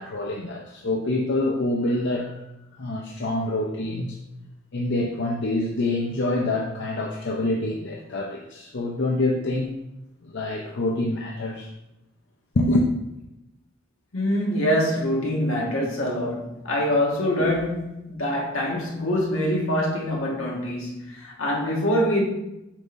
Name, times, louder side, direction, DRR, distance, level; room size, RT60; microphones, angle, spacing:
voice 1, 0.0-2.4 2.8-4.2 4.7-9.7 10.2-11.7 12.5-12.9, left 2 dB, 60° left, 0 dB, 0.6 m, -26 dB
voice 2, 14.1-22.2, equal, 80° left, -2 dB, 1.6 m, -24 dB
7.4 x 5.3 x 2.6 m, 0.90 s
head